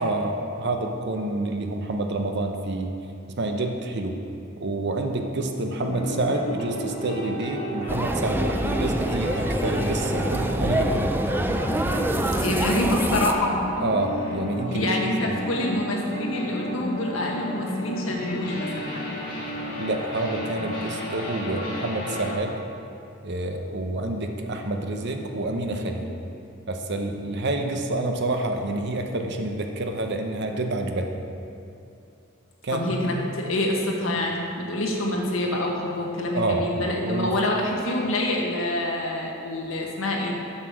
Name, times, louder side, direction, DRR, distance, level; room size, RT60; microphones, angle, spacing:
voice 1, 0.0-2.9 3.4-4.2 4.6-11.1 13.8-15.3 19.8-22.5 23.2-26.1 26.7-31.2 32.6-32.8 36.3-36.7 37.0-37.3, right 2 dB, 55° right, 4 dB, 0.8 m, -28 dB
sound 1, 5.8-22.3, left 1 dB, 45° left, 1.7 m, -33 dB
sound 2, 7.9-13.3, right 1 dB, 10° right, 0.4 m, -25 dB
voice 2, 12.4-13.5 14.7-19.1 32.7-40.3, left 1 dB, 90° left, -1 dB, 1.4 m, -26 dB
7.2 x 6.8 x 6.2 m, 2.6 s
head